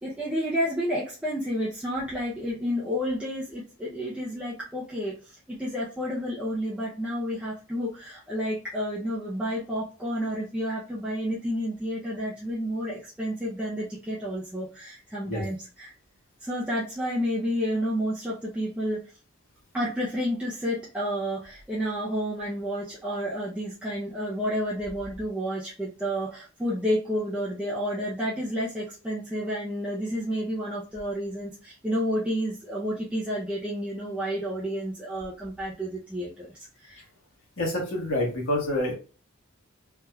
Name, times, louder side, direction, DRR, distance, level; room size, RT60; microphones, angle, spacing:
voice 1, 0.0-15.9 16.4-19.1 19.7-37.0, equal, 5° right, -8 dB, 0.6 m, -30 dB
voice 2, 37.6-38.9, left 1 dB, 65° left, -4 dB, 1.5 m, -27 dB
3.4 x 2.9 x 2.3 m, 0.36 s
head